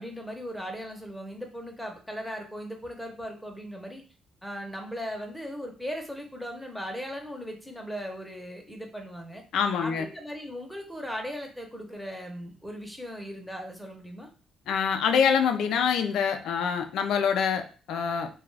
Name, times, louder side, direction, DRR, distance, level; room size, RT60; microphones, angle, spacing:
voice 1, 0.0-4.0 4.4-9.4 9.8-14.3, equal, ahead, 2 dB, 0.7 m, -38 dB
voice 2, 9.5-10.1 14.7-18.3, left 7 dB, 80° left, 6 dB, 0.4 m, -25 dB
2.4 x 2.3 x 3.3 m, 0.37 s
cardioid pair, 90°, 0 cm